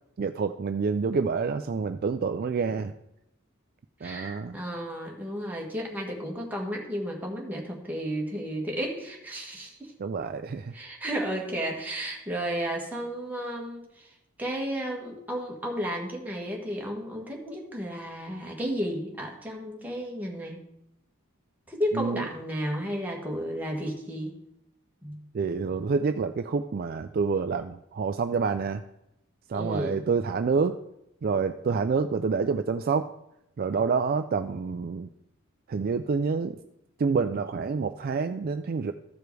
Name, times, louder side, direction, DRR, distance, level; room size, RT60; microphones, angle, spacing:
voice 1, 0.2-2.9 4.0-4.6 10.0-10.7 21.9-22.3 25.3-28.8 29.5-30.8 31.2-33.1 33.6-35.1 35.7-36.6 37.0-38.9, right 5 dB, 45° right, 9 dB, 0.3 m, -27 dB
voice 2, 4.0-9.9 10.7-14.1 14.4-20.6 21.7-24.3 25.0-25.3 29.5-30.0, equal, 10° right, -1 dB, 1.6 m, -33 dB
14.0 x 5.0 x 4.6 m, 0.83 s
head